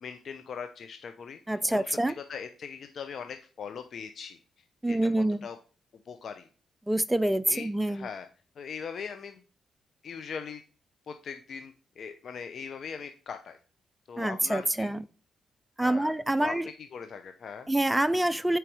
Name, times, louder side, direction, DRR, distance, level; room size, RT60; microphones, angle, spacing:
voice 1, 0.0-4.4 4.9-5.6 6.1-6.5 7.5-8.3 8.6-9.4 10.0-10.6 11.1-13.6 14.1-15.0 15.8-17.7, left 6 dB, 65° left, 8 dB, 0.8 m, -40 dB
voice 2, 1.5-2.1 4.8-5.5 6.9-8.1 14.2-15.0 15.8-16.7 17.7-18.6, right 1 dB, 10° right, 15 dB, 0.5 m, -26 dB
7.8 x 4.9 x 4.9 m, 0.38 s
supercardioid pair, 50°, 0 cm